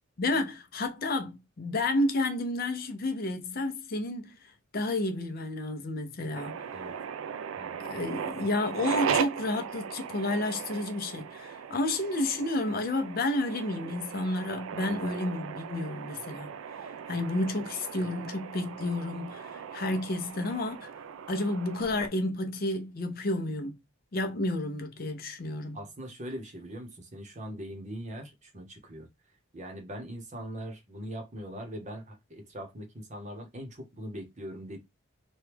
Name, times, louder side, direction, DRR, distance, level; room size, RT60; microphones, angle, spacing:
voice 1, 0.2-6.7 7.8-16.5 16.8-20.9 21.3-23.8 24.1-25.8, left 2 dB, 45° left, 0.5 m, -31 dB
sound 1, 6.3-22.1, right 7 dB, 75° right, 0.4 m, -37 dB
voice 2, 25.7-29.1 29.5-34.8, equal, 35° right, 0.8 m, -41 dB
3.0 x 2.2 x 3.3 m
head